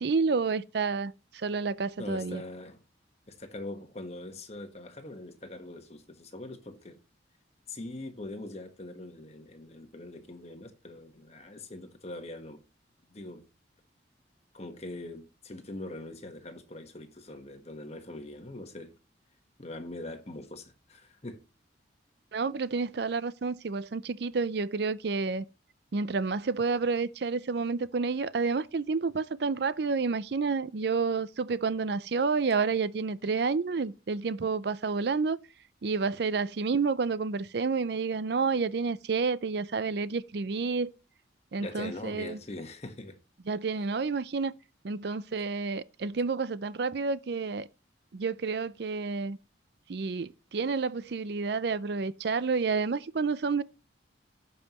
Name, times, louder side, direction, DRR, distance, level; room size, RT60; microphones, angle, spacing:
voice 1, 0.0-2.4 22.3-25.4 25.9-35.4 35.8-40.9 41.5-42.4 43.5-44.5 44.8-47.7 48.1-49.4 49.9-53.6, right 4 dB, 60° right, 0.5 m, -29 dB
voice 2, 2.0-2.8 3.3-7.0 7.7-12.6 13.1-13.4 14.5-18.9 19.6-21.4 41.6-43.2, left 2 dB, 35° left, 1.3 m, -42 dB
16.0 x 5.5 x 3.0 m
head